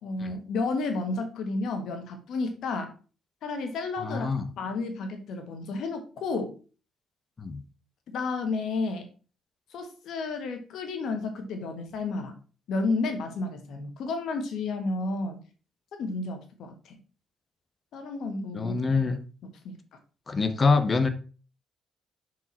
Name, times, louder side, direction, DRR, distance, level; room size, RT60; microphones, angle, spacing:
voice 1, 0.0-2.9 3.4-4.3 4.6-6.5 8.1-9.1 9.7-12.3 12.7-15.4 16.0-17.0 17.9-18.8 19.6-19.7, left 3 dB, 75° left, 6 dB, 1.5 m, -31 dB
voice 2, 4.0-4.5 7.4-7.6 18.5-19.2 20.3-21.1, left 4 dB, 35° left, 10 dB, 0.9 m, -25 dB
6.0 x 4.7 x 4.3 m, 0.36 s
cardioid pair, 90°, 0 cm